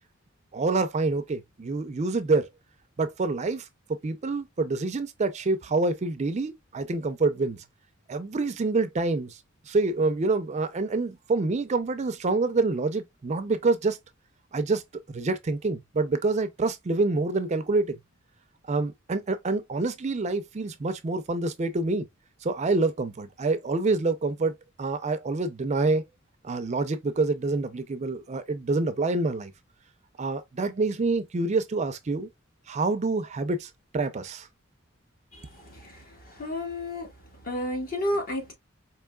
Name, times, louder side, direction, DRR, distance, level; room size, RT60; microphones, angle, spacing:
voice 1, 0.5-2.5 3.0-7.6 8.1-9.4 9.7-14.0 14.5-14.8 15.1-18.0 18.7-22.0 22.4-26.0 26.4-29.5 30.2-32.3 32.7-34.5, right 3 dB, 35° right, 0.4 m, -27 dB
voice 2, 35.3-37.1 37.4-38.5, left 1 dB, 45° left, 1.3 m, -32 dB
4.6 x 2.9 x 2.2 m
head